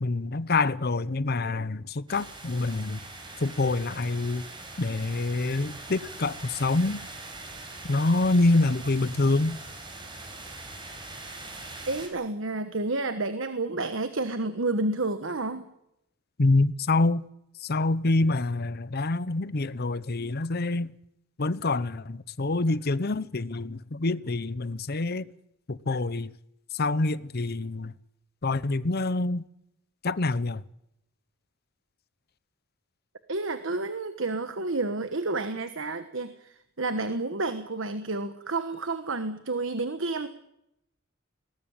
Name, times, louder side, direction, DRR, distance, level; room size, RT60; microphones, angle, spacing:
voice 1, 0.0-3.0 3.4-4.4 4.8-7.0 7.8-9.6 16.4-17.3 17.6-20.9 21.4-25.3 25.7-26.3 26.7-27.9 28.4-29.4 30.0-30.6, left 2 dB, 50° left, 0.8 m, -26 dB
sound 1, 2.1-12.1, right 2 dB, 25° right, 4.9 m, -42 dB
voice 2, 11.9-15.6 33.3-40.3, right 2 dB, 70° right, 1.3 m, -30 dB
20.5 x 19.0 x 8.9 m
head